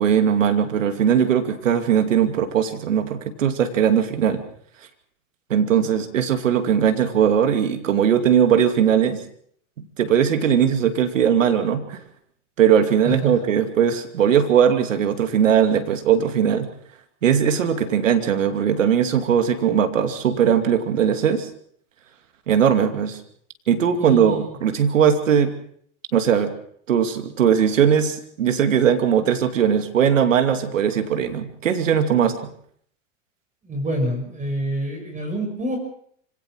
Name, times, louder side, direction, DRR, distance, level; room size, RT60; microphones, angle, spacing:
voice 1, 0.0-4.4 5.5-9.2 10.0-12.0 12.6-16.7 17.2-21.5 22.5-23.2 23.7-25.5 26.1-26.5 26.9-32.5, right 8 dB, 90° right, 8 dB, 2.6 m, -19 dB
voice 2, 13.0-13.4 24.0-24.5 33.6-35.8, equal, 20° right, 3 dB, 6.2 m, -27 dB
25.5 x 17.5 x 6.3 m, 0.63 s
hypercardioid pair, 100°, 37 cm